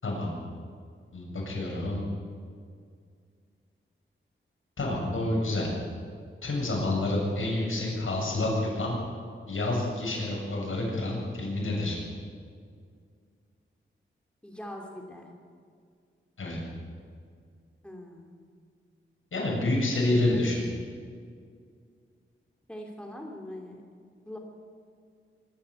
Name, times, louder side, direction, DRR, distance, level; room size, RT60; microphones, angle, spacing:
voice 1, 0.0-0.3 1.1-2.0 4.8-5.7 6.4-9.0 9.5-12.0 16.4-16.6 19.3-20.6, left 2 dB, 75° left, -3 dB, 7.8 m, -28 dB
voice 2, 14.4-15.3 17.8-18.5 20.1-20.9 22.7-23.8 24.2-24.4, left 1 dB, 5° left, 1 dB, 3.1 m, -42 dB
25.0 x 13.5 x 8.2 m, 2.2 s
wide cardioid pair, 85°, 21 cm